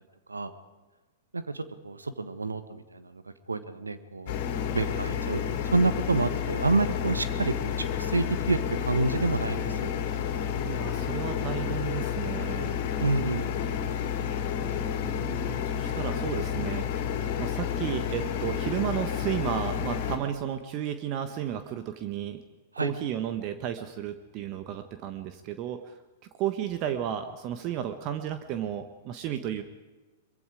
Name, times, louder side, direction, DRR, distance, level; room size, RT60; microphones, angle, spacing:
voice 1, 1.3-3.2 3.5-4.3 4.7-5.4 5.7-9.9 13.0-13.5 22.7-22.9, right 3 dB, 80° right, 11 dB, 1.5 m, -28 dB
sound 1, 4.3-20.2, left 8 dB, 50° left, 3.1 m, -30 dB
voice 2, 10.6-12.8 15.0-16.9 17.4-22.4 22.8-25.9 26.4-29.6, right 10 dB, 40° right, 8 dB, 1.4 m, -33 dB
23.5 x 23.0 x 5.0 m, 1.2 s
figure-of-eight pair, 100°, 0 cm